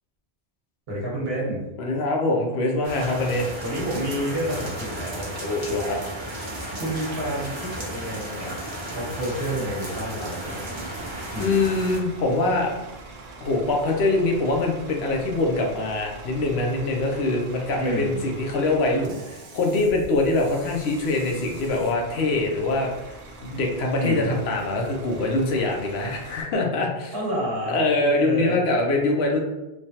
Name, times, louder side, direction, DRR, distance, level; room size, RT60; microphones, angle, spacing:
voice 1, 0.9-1.6 3.6-5.3 6.8-8.5 8.9-10.9 11.3-11.7 17.7-18.2 24.0-24.3 27.1-27.8 28.1-28.6, right 1 dB, 60° right, -4 dB, 1.1 m, -29 dB
voice 2, 1.8-3.5 5.4-6.0 11.4-12.7 13.4-23.2 23.4-27.1 27.7-29.4, left 2 dB, 70° left, 0 dB, 0.8 m, -24 dB
sound 1, 2.8-12.0, right 1 dB, 35° right, 0.6 m, -34 dB
Bus / Idling, 10.4-26.4, right 2 dB, 80° right, 0.9 m, -43 dB
3.1 x 2.2 x 2.7 m, 1.0 s
omnidirectional pair, 1.2 m